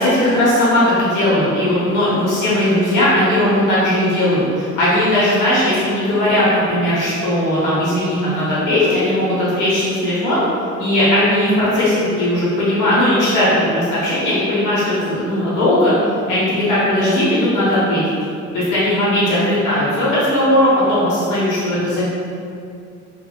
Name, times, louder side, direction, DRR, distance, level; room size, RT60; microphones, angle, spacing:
voice 1, 0.0-10.4 10.8-15.9 16.3-18.0 18.5-22.0, left 1 dB, 90° left, -9 dB, 1.0 m, -17 dB
3.1 x 2.6 x 2.2 m, 2.4 s
cardioid pair, 90°, 30 cm